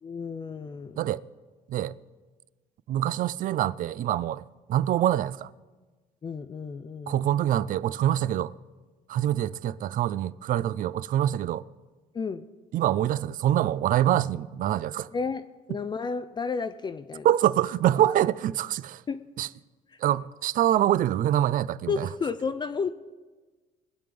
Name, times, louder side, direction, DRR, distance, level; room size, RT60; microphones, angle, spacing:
voice 1, 0.0-1.0 6.2-7.3 9.2-9.3 12.1-12.5 15.1-15.4 15.7-17.3 19.1-19.2 19.9-20.0 21.9-22.9, left 5 dB, 25° left, 0.5 m, -32 dB
voice 2, 2.9-5.5 7.1-8.5 9.1-11.7 12.7-15.1 17.2-19.0 19.4-19.5 20.0-22.1, right 12 dB, 55° right, 0.4 m, -25 dB
21.5 x 7.8 x 5.1 m
cardioid pair, 110°, 17 cm